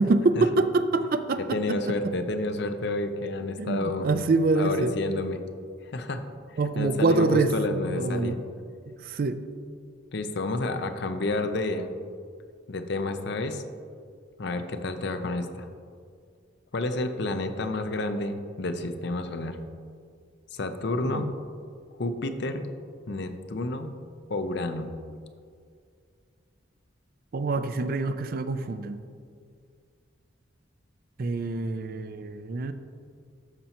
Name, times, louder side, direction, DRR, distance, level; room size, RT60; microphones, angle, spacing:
voice 1, 0.0-1.4 1.7-1.9 3.6-4.9 6.6-8.4 8.9-9.4 21.1-21.2 27.3-29.0 31.2-32.7, right 3 dB, 45° right, 11 dB, 0.4 m, -25 dB
voice 2, 1.4-4.1 4.6-5.4 5.8-6.2 6.5-8.4 10.1-11.9 12.7-13.6 14.4-15.7 16.7-19.6 20.5-21.3 22.0-22.7 23.1-23.9 24.3-24.9, left 2 dB, 55° left, 8 dB, 0.6 m, -30 dB
12.5 x 5.4 x 2.9 m, 2.2 s
head